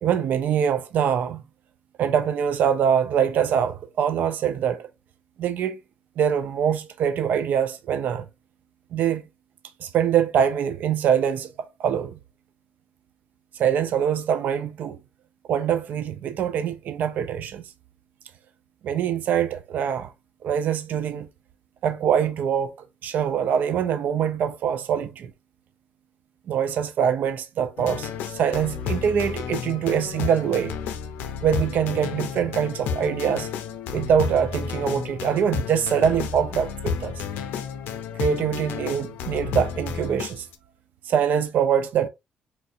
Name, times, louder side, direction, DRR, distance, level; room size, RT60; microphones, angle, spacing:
voice 1, 0.0-1.4 2.0-4.9 5.4-5.8 6.2-8.3 8.9-9.2 9.8-12.2 13.6-15.0 15.5-17.6 18.8-20.1 20.4-21.3 21.8-22.7 23.0-25.3 26.5-30.7 31.4-33.5 33.9-37.1 38.2-40.5 41.1-42.1, right 8 dB, 70° right, 0.4 m, -24 dB
sound 1, 27.8-40.5, left 7 dB, 90° left, 0.5 m, -31 dB
4.5 x 2.6 x 2.4 m
cardioid pair, 80°, 3 cm